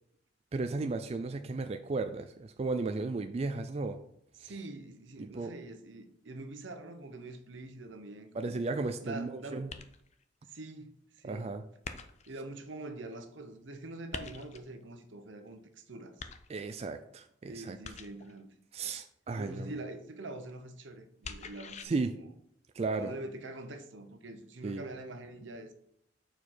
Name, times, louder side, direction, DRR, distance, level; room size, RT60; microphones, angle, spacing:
voice 1, 0.5-4.0 4.4-4.5 5.2-5.5 8.3-9.7 11.2-11.6 16.5-17.8 18.7-19.8 21.8-22.1 22.7-23.1 24.6-24.8, right 3 dB, 35° right, 0.4 m, -34 dB
voice 2, 4.4-8.6 9.0-9.7 10.5-11.5 12.3-16.2 17.4-18.5 19.3-22.3 22.9-25.7, right 2 dB, 80° right, 0.9 m, -44 dB
sound 1, 9.7-10.2 11.8-12.4 14.1-14.7 16.2-16.8 17.8-18.4 21.2-21.8, left 5 dB, 35° left, 0.5 m, -44 dB
6.8 x 4.6 x 4.3 m
head